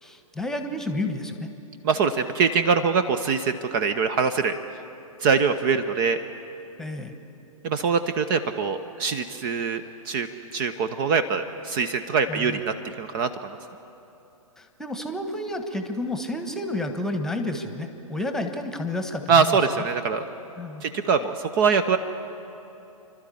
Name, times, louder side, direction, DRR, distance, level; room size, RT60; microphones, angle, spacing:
voice 1, 0.0-1.5 6.8-7.1 12.3-12.6 14.6-19.6 20.6-20.8, left 1 dB, 5° left, 6 dB, 1.4 m, -30 dB
voice 2, 1.8-4.5 5.2-6.2 7.6-13.6 19.3-20.2 20.8-22.0, right 5 dB, 35° right, 11 dB, 0.9 m, -23 dB
29.5 x 12.5 x 8.6 m, 2.9 s
figure-of-eight pair, 115°, 19 cm